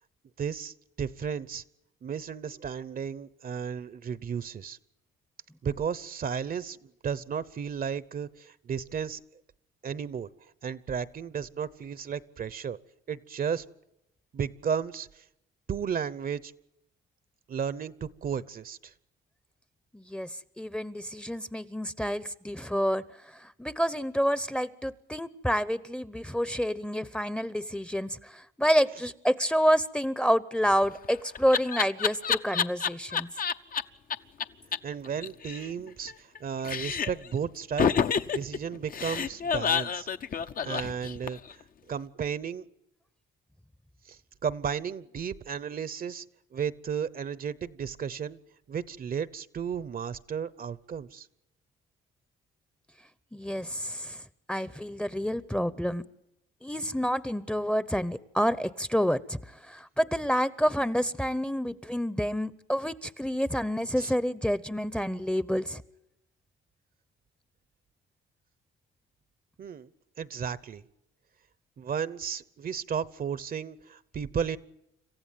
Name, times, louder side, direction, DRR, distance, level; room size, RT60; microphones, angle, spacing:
voice 1, 0.4-1.6 2.0-4.8 5.6-9.2 9.8-10.3 10.6-12.8 13.1-13.6 14.3-15.2 15.7-16.5 17.5-18.9 34.8-38.0 38.3-40.1 40.6-41.4 41.9-42.6 44.1-46.2 46.5-48.4 48.7-51.3 64.0-64.1 69.6-69.9 70.2-70.8 71.8-74.6, right 7 dB, 45° right, 18 dB, 0.8 m, -34 dB
voice 2, 19.9-20.3 20.6-23.0 23.3-33.3 53.3-54.2 54.5-56.0 56.6-65.8, equal, 5° left, 17 dB, 0.8 m, -28 dB
Laughter, 30.7-33.8 34.1-34.2 34.4-34.5 34.7-34.8 35.1-36.4 36.6-37.3 37.8-41.5, left 7 dB, 45° left, 0.7 m, -28 dB
27.0 x 15.0 x 9.2 m, 0.86 s
cardioid pair, 90°, 20 cm